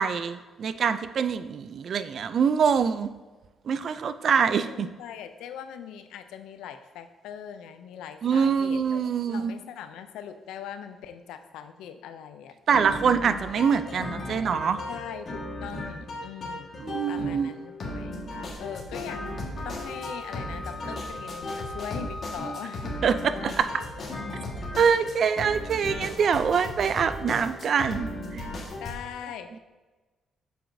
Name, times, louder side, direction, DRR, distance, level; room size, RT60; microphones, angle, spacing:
voice 1, 0.0-3.1 3.7-4.9 8.2-9.5 12.7-14.8 16.8-17.6 23.0-23.7 24.8-28.5, right 6 dB, 55° right, 12 dB, 0.3 m, -24 dB
voice 2, 4.3-13.1 14.9-16.8 17.1-18.2 18.6-23.3 24.7-24.9 28.8-29.6, left 8 dB, 90° left, 9 dB, 0.4 m, -41 dB
sound 1, 12.7-28.9, left 1 dB, 45° left, 1.5 m, -36 dB
Wind instrument woodwind instrument, 19.6-23.2, left 1 dB, 30° left, 1.6 m, -41 dB
7.1 x 5.8 x 2.7 m, 1.2 s
cardioid pair, 90°, 0 cm